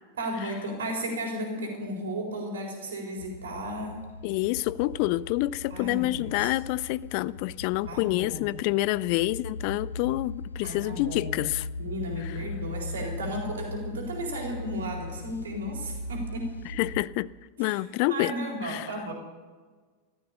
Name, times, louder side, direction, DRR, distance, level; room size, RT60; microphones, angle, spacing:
voice 1, 0.2-4.0 5.7-6.5 7.9-8.6 10.6-11.4 11.8-16.6 17.6-17.8 18.1-19.1, equal, 65° right, 4.1 m, -34 dB
sound 1, 3.2-17.0, left 2 dB, 80° left, 1.0 m, -39 dB
voice 2, 4.2-11.7 12.2-12.4 16.8-17.3 17.6-18.3 18.6-18.9, left 18 dB, 45° left, 0.4 m, -28 dB
15.0 x 13.5 x 6.7 m
figure-of-eight pair, 90°, 0 cm